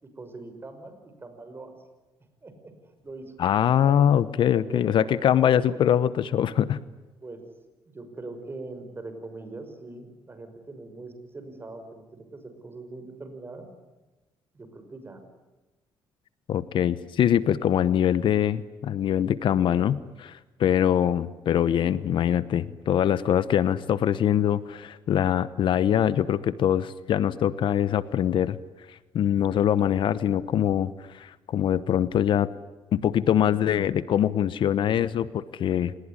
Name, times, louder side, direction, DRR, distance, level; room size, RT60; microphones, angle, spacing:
voice 1, 0.0-1.8 2.4-2.7 3.0-3.4 3.8-4.0 4.5-5.8 7.2-7.4 7.9-13.7 14.5-15.2, right 2 dB, 25° right, 8 dB, 5.9 m, -42 dB
voice 2, 3.4-6.8 16.5-28.6 29.1-32.5 32.9-35.9, left 10 dB, 65° left, 16 dB, 1.0 m, -23 dB
28.0 x 20.0 x 9.8 m, 1.1 s
cardioid pair, 105°, 9 cm